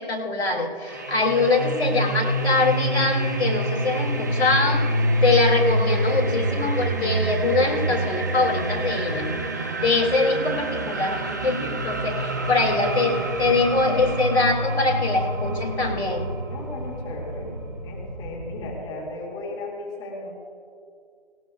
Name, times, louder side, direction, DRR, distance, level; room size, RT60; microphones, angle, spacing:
voice 1, 0.0-4.8 5.2-9.3 9.8-16.3, left 3 dB, 85° left, 1 dB, 2.8 m, -23 dB
sound 1, 0.9-18.8, right 1 dB, 20° right, 0.5 m, -27 dB
voice 2, 12.0-12.5 16.4-17.6 17.8-20.3, left 2 dB, 10° left, -6 dB, 2.1 m, -36 dB
18.5 x 18.0 x 2.4 m, 2.3 s
figure-of-eight pair, 155°, 32 cm